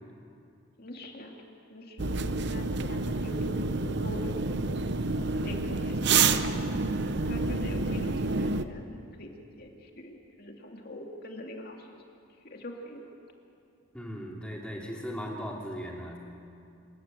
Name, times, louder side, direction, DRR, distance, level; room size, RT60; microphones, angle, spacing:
voice 1, 0.8-1.4 1.7-4.6 5.2-6.7 7.2-9.3 9.6-12.0 12.4-13.0, left 1 dB, 45° left, 1 dB, 2.6 m, -43 dB
sound 1, 2.0-8.6, right 4 dB, 50° right, 0.7 m, -28 dB
voice 2, 7.9-8.2 13.9-16.2, equal, 5° left, -2 dB, 2.8 m, -38 dB
27.5 x 14.0 x 9.1 m, 2.5 s
head